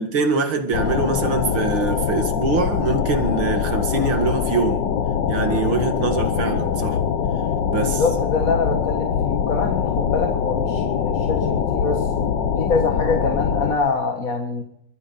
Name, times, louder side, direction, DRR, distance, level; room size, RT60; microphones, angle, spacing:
voice 1, 0.0-4.8 5.3-7.0 7.6-8.0, right 4 dB, 80° right, 6 dB, 2.8 m, -23 dB
sound 1, 0.7-13.8, left 7 dB, 65° left, 1.6 m, -23 dB
voice 2, 7.7-12.1 12.6-14.6, left 4 dB, 45° left, 3 dB, 1.9 m, -25 dB
24.0 x 8.9 x 5.6 m, 0.74 s
omnidirectional pair, 2.2 m